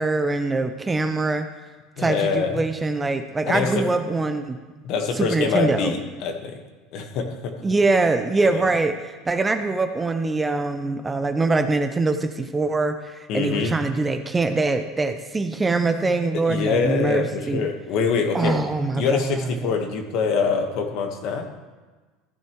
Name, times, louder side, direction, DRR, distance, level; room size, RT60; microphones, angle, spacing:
voice 1, 0.0-1.5 2.0-4.6 5.2-5.9 7.6-17.7 18.3-19.7, right 3 dB, 10° right, 8 dB, 0.5 m, -23 dB
voice 2, 2.0-2.6 3.5-3.8 4.8-6.6 6.9-7.5 8.4-8.7 13.3-13.7 16.5-18.6 19.0-21.5, left 5 dB, 55° left, 5 dB, 1.3 m, -24 dB
14.5 x 9.2 x 3.1 m, 1.3 s
cardioid pair, 150°, 0 cm